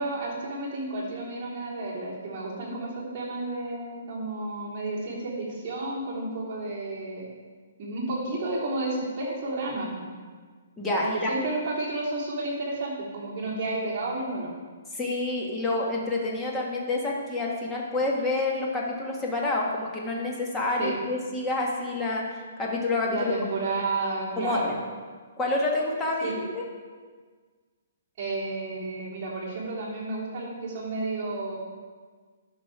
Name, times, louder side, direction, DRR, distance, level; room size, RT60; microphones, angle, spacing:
voice 1, 0.0-7.3 7.8-10.1 11.0-14.5 20.8-20.9 23.1-24.8 26.2-26.3 28.2-31.5, right 2 dB, 30° right, -7 dB, 3.2 m, -31 dB
voice 2, 10.8-11.3 14.9-22.2 22.6-23.4 24.4-24.7 25.4-26.7, left 2 dB, 10° left, -2 dB, 1.4 m, -28 dB
11.0 x 6.2 x 4.8 m, 1.5 s
hypercardioid pair, 165°, 0 cm